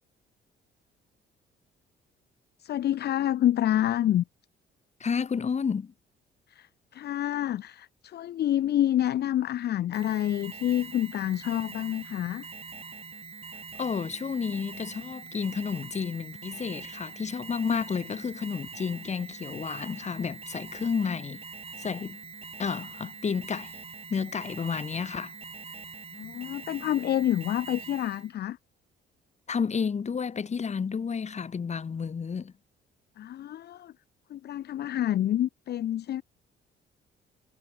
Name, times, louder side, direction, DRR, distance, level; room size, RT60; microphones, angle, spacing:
voice 1, 2.6-4.2 6.5-12.5 26.1-28.6 33.2-33.9 34.3-36.2, left 12 dB, 55° left, 0.5 m, -28 dB
voice 2, 5.0-5.9 13.8-21.4 21.8-22.2 22.6-23.7 24.1-25.3 29.5-32.5, left 6 dB, 35° left, 1.2 m, -31 dB
Alarm, 9.9-28.3, right 4 dB, 30° right, 3.6 m, -44 dB
cardioid pair, 90°, 20 cm